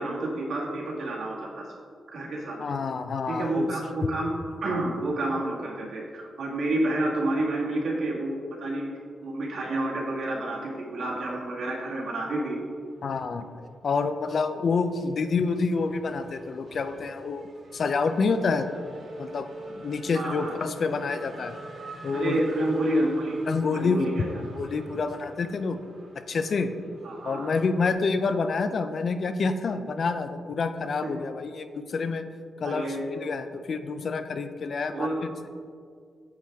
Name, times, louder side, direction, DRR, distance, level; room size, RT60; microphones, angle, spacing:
voice 1, 0.0-1.7 2.1-2.7 3.3-4.3 4.6-8.9 9.2-12.6 20.1-20.6 22.1-23.4 23.7-24.3 27.0-27.5 31.0-31.1 32.6-33.0 34.9-35.2, right 1 dB, 70° right, -3 dB, 2.0 m, -29 dB
voice 2, 2.6-3.7 13.0-13.5 13.8-18.7 19.2-21.5 22.0-22.4 23.5-25.8 26.2-26.7 27.2-32.2 32.6-35.1, left 4 dB, 45° left, 9 dB, 0.4 m, -28 dB
Race car auto racing / Accelerating revving vroom, 12.9-13.9 14.2-27.9, right 2 dB, 50° right, 1.5 m, -46 dB
9.4 x 7.5 x 3.5 m, 2.1 s
wide cardioid pair, 170°, 0 cm